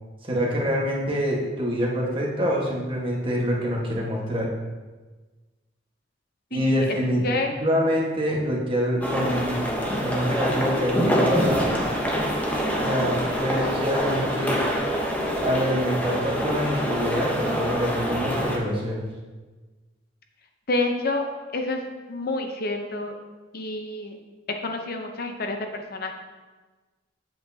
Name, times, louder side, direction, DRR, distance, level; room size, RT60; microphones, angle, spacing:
voice 1, 0.2-4.5 6.5-7.2 7.5-9.6 9.9-11.8 12.8-14.6 15.4-19.0, equal, 30° right, -3 dB, 1.4 m, -25 dB
voice 2, 6.5-7.0 7.2-7.5 20.7-21.2 21.5-21.8 22.1-23.1 23.5-24.1 24.5-26.1, left 2 dB, 55° left, 4 dB, 0.7 m, -28 dB
sound 1, 9.0-18.6, equal, 10° left, 1.0 m, -26 dB
8.4 x 7.7 x 2.8 m, 1.3 s
head